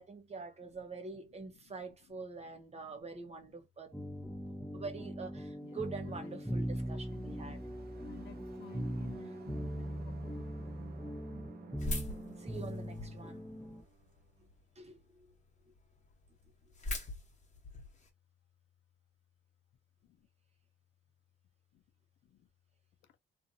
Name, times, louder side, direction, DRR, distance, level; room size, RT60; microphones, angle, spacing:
voice 1, 0.0-4.0 4.7-7.6 9.1-9.2 12.4-13.4 14.8-15.3 15.6-15.7, right 4 dB, 35° right, 1.0 m, -45 dB
sound 1, 3.9-13.8, equal, ahead, 1.0 m, -40 dB
sound 2, 5.8-14.5, right 6 dB, 50° right, 0.7 m, -56 dB
voice 2, 6.0-6.6 6.9-7.6 8.0-10.4 13.2-13.8 20.0-20.2 21.7-21.8 22.3-22.5, left 12 dB, 75° left, 0.6 m, -56 dB
sound 3, 11.8-13.3 13.8-14.5 15.0-15.1 15.3-15.4 15.8-15.9 16.0-18.1, left 1 dB, 40° left, 1.2 m, -40 dB
2.6 x 2.6 x 2.6 m
cardioid pair, 90°, 20 cm